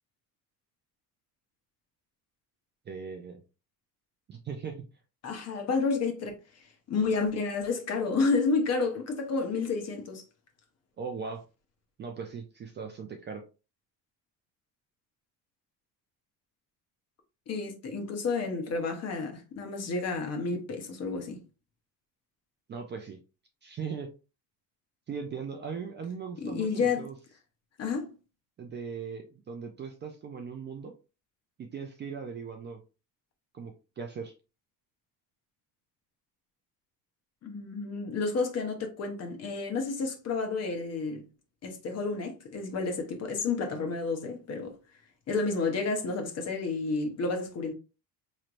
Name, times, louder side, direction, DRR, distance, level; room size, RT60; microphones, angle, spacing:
voice 1, 2.9-3.4 4.3-4.8 11.0-11.4 12.0-13.4 22.7-23.2 23.6-24.1 25.1-27.1 28.6-30.9 31.6-32.8 33.5-34.3, right 6 dB, 25° right, 0.4 m, -39 dB
voice 2, 5.2-6.3 6.9-10.2 17.5-21.4 26.4-27.1 27.8-28.1 37.4-41.2 41.6-44.8 45.3-47.7, left 4 dB, 40° left, 0.9 m, -30 dB
4.3 x 3.2 x 2.5 m
cardioid pair, 160°, 41 cm